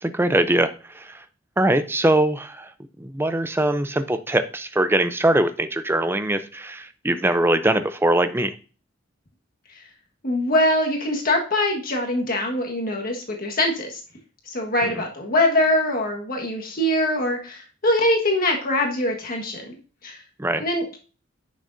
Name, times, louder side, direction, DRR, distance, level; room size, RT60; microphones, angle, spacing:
voice 1, 0.0-1.2 1.6-2.7 3.0-8.5 15.0-15.1 20.4-20.6, right 1 dB, 10° right, 11 dB, 0.5 m, -22 dB
voice 2, 10.2-14.0 14.5-19.8 20.0-20.2 20.6-21.0, left 1 dB, 50° left, 1 dB, 1.5 m, -23 dB
10.0 x 6.5 x 2.6 m, 0.37 s
head